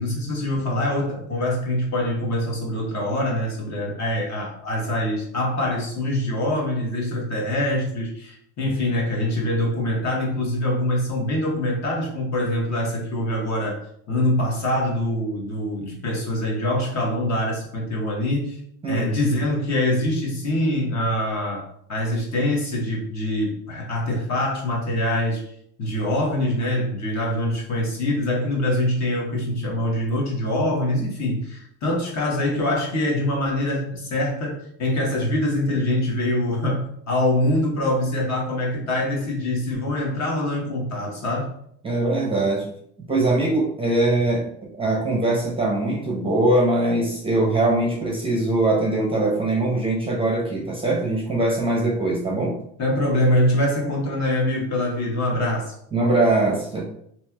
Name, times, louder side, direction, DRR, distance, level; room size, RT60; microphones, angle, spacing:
voice 1, 0.0-13.8 14.1-18.6 18.9-25.4 25.8-41.5 52.8-55.7, left 1 dB, 40° left, -2 dB, 1.1 m, -24 dB
voice 2, 18.8-19.3 41.8-42.7 43.1-52.6 55.9-56.8, right 2 dB, 15° right, -3 dB, 0.7 m, -22 dB
3.0 x 2.8 x 2.3 m, 0.69 s
supercardioid pair, 110°, 41 cm